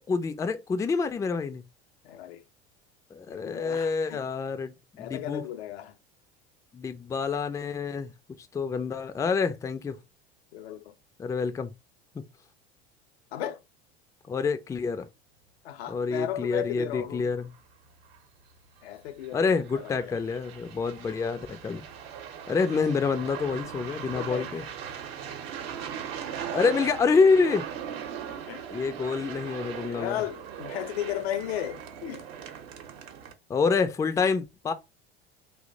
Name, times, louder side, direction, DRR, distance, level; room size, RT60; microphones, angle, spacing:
voice 1, 0.1-1.6 3.1-4.7 5.0-5.4 6.7-8.1 8.5-10.0 11.2-11.7 12.1-12.2 14.3-15.1 15.9-17.5 19.3-21.8 22.5-24.6 26.5-27.7 28.7-30.2 33.5-34.7, left 4 dB, 10° left, 0.3 m, -27 dB
voice 2, 2.0-2.4 3.3-4.3 5.0-6.0 10.5-10.9 13.3-13.6 15.6-17.4 18.8-20.2 24.1-24.6 28.5-28.7 29.9-32.2, left 11 dB, 80° left, 0.5 m, -35 dB
sound 1, 17.5-17.6 18.0-18.2 19.2-33.3, right 8 dB, 70° right, 0.8 m, -39 dB
2.8 x 2.1 x 3.8 m
hypercardioid pair, 80°, 31 cm